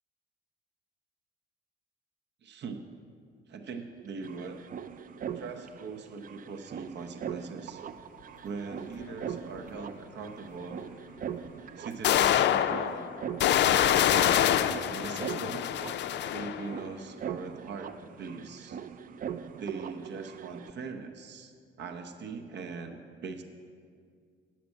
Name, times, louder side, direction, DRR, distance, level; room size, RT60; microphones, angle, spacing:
voice 1, 2.4-2.9 3.5-4.6 5.3-7.8 8.4-10.8 11.8-13.1 13.6-15.7 16.3-18.8 19.6-23.4, right 4 dB, 60° right, 5 dB, 0.9 m, -41 dB
sound 1, 3.7-3.8 3.9-20.7, right 8 dB, 45° right, 0.4 m, -41 dB
sound 2, 9.3-9.4 11.2-11.3 12.0-16.7, left 11 dB, 65° left, 0.4 m, -25 dB
8.3 x 5.9 x 7.7 m, 2.1 s
cardioid pair, 90°, 20 cm